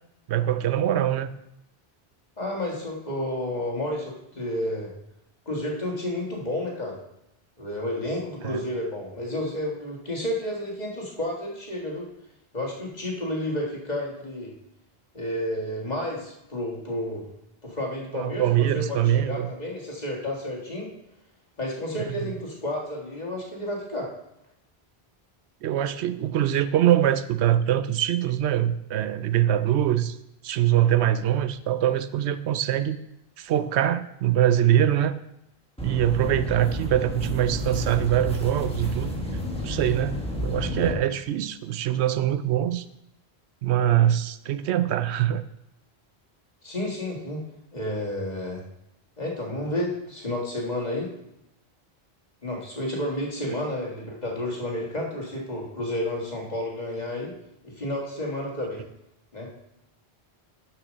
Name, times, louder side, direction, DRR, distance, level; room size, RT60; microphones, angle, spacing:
voice 1, 0.3-1.3 8.4-8.6 18.1-19.5 22.0-22.1 25.6-30.2 30.4-33.0 33.4-35.1 35.8-39.2 39.6-42.8 43.6-45.4 53.5-53.6, right 11 dB, 85° right, 13 dB, 0.8 m, -23 dB
voice 2, 2.4-4.9 5.5-7.0 7.6-12.1 12.5-14.5 15.1-17.3 17.6-20.9 21.6-24.1 46.6-47.4 47.7-48.6 49.2-51.1 52.4-57.3 57.6-58.8 59.3-59.5, left 1 dB, 40° left, -1 dB, 2.0 m, -31 dB
sound 1, 35.8-40.9, equal, 5° left, 1.2 m, -31 dB
6.8 x 6.0 x 6.4 m, 0.82 s
omnidirectional pair, 1.1 m